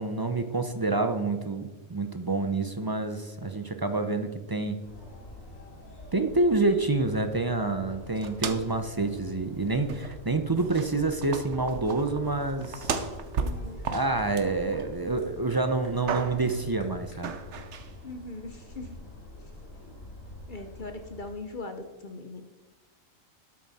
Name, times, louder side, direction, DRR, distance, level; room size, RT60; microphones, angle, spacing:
voice 1, 0.0-4.8 6.1-12.9 13.9-17.3, right 3 dB, 30° right, 7 dB, 0.4 m, -28 dB
sound 1, 4.8-21.3, left 1 dB, 85° left, 2.7 m, -46 dB
sound 2, 8.2-8.8 9.2-9.3 9.9-10.3 10.5-15.2 15.6-16.6 17.2-17.9, right 5 dB, 65° right, 1.1 m, -35 dB
voice 2, 13.4-13.8 18.0-19.0 20.5-22.4, left 2 dB, 45° left, 6 dB, 0.9 m, -40 dB
12.5 x 7.3 x 4.2 m, 1.3 s
omnidirectional pair, 1.3 m